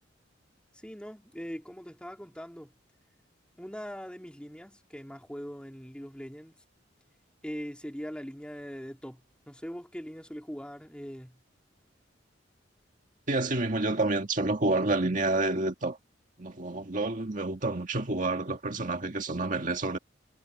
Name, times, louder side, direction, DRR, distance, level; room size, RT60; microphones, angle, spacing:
voice 1, 0.8-2.7 3.6-6.6 7.4-9.2 9.5-11.4, equal, 5° left, 3.3 m, -41 dB
voice 2, 13.3-16.0 16.4-20.0, right 2 dB, 45° right, 1.8 m, -29 dB
head